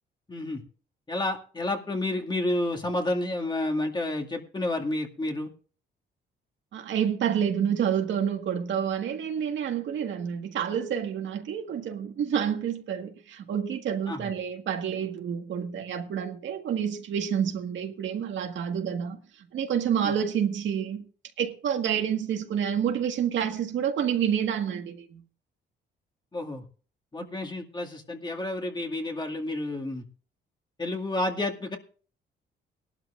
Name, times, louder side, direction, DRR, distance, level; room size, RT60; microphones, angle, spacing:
voice 1, 0.3-0.6 1.1-5.5 14.1-14.3 20.0-20.1 26.3-26.6 27.1-30.0 30.8-31.8, left 2 dB, 20° left, 2.2 m, -30 dB
voice 2, 6.7-19.2 19.5-21.1 21.4-25.2 27.2-27.4, right 8 dB, 70° right, 1.8 m, -28 dB
19.0 x 12.0 x 2.6 m
cardioid pair, 90°, 20 cm